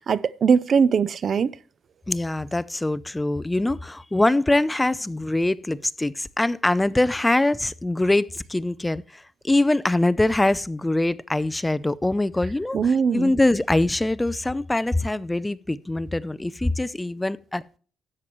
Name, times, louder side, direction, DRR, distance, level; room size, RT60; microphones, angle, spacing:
voice 1, 0.0-1.5 12.7-13.3, right 6 dB, 50° right, 0.5 m, -21 dB
voice 2, 2.1-17.8, left 2 dB, 10° left, 0.5 m, -23 dB
13.0 x 9.3 x 3.1 m
cardioid pair, 90°, 0 cm